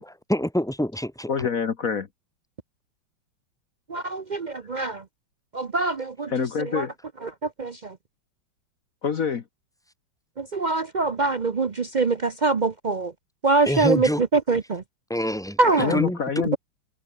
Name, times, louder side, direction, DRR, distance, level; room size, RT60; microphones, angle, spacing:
voice 1, 0.0-1.3 13.7-14.2 15.1-15.6 15.9-16.4, equal, ahead, 2.2 m, -26 dB
voice 2, 1.3-2.1 6.3-6.9 9.0-9.4 15.8-16.6, left 6 dB, 50° left, 1.4 m, -26 dB
voice 3, 3.9-5.0 5.5-6.3 6.6-6.9 7.2-8.0 10.4-13.1 13.4-14.8 15.6-16.0, right 3 dB, 85° right, 0.4 m, -24 dB
omnidirectional pair, 2.2 m